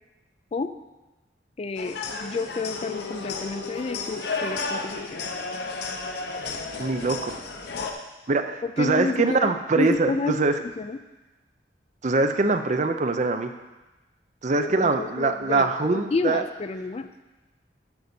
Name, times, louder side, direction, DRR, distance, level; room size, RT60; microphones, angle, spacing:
voice 1, 1.6-5.2 8.6-11.0 14.6-17.1, left 3 dB, 35° left, 10 dB, 0.4 m, -30 dB
sound 1, 1.8-7.9, left 4 dB, 65° left, 0.8 m, -32 dB
voice 2, 6.8-7.3 8.3-10.5 12.0-13.5 14.4-16.4, right 3 dB, 45° right, 8 dB, 0.5 m, -23 dB
10.5 x 3.9 x 7.0 m, 1.1 s
head